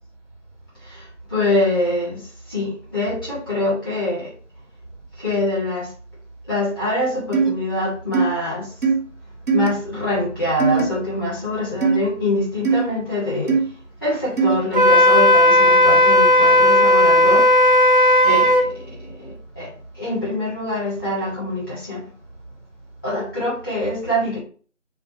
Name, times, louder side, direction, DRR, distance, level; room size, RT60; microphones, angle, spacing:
voice 1, 0.8-2.2 2.5-4.3 5.2-5.9 6.5-8.7 9.5-13.6 14.0-17.5 18.2-22.0 23.0-24.4, left 1 dB, 5° right, -9 dB, 1.2 m, -24 dB
sound 1, 7.3-7.5 8.1-8.2 8.8-8.9 9.5-9.7 10.6-10.8 11.8-12.0 12.6-12.8 13.5-13.6 14.4-14.5, right 5 dB, 80° right, 1.5 m, -18 dB
Wind instrument woodwind instrument, 14.7-18.7, left 1 dB, 45° right, 0.8 m, -14 dB
3.5 x 2.3 x 4.3 m, 0.41 s
figure-of-eight pair, 170°, 38 cm